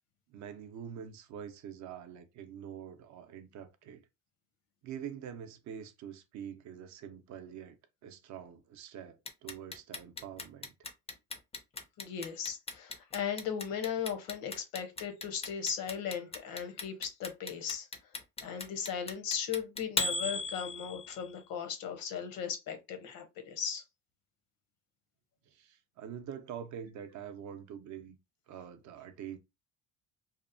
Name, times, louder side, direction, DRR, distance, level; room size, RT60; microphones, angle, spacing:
voice 1, 0.3-4.0 4.8-7.8 8.0-10.7 25.5-28.2 28.5-29.4, right 8 dB, 55° right, 0.5 m, -45 dB
Clock, 9.3-21.2, left 3 dB, 20° left, 0.4 m, -37 dB
voice 2, 12.0-17.9 18.4-23.8, left 7 dB, 70° left, 0.8 m, -37 dB
2.8 x 2.0 x 2.5 m
cardioid pair, 115°, 35 cm